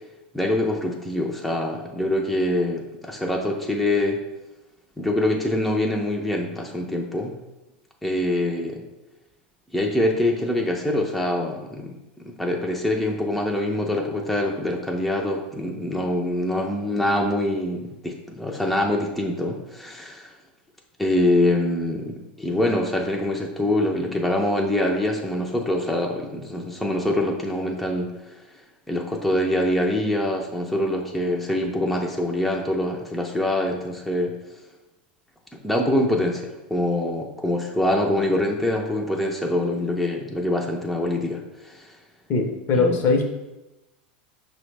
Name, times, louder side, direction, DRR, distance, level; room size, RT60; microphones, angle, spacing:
voice 1, 0.3-4.2 5.0-7.4 8.0-8.8 9.7-12.0 12.2-20.3 21.0-28.4 28.9-34.4 35.5-42.0 42.7-43.0, left 1 dB, ahead, -1 dB, 0.4 m, -24 dB
voice 2, 42.3-43.3, left 3 dB, 45° left, 3 dB, 0.7 m, -21 dB
5.4 x 2.1 x 3.2 m, 1.0 s
hypercardioid pair, 105°, 5 cm